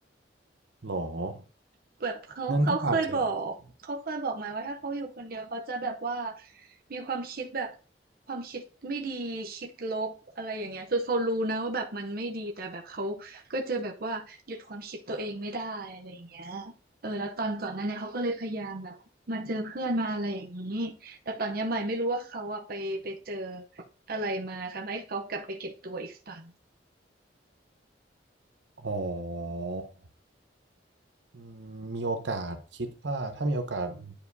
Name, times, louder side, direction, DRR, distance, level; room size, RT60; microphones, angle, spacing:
voice 1, 0.8-1.4 2.5-3.2 28.8-29.9 31.3-34.1, right 2 dB, 90° right, 1.0 m, -31 dB
voice 2, 2.0-3.6 3.8-7.8 8.3-16.7 17.0-19.0 19.3-23.6 24.1-26.5, right 2 dB, 55° right, 0.8 m, -33 dB
10.0 x 4.9 x 2.7 m
head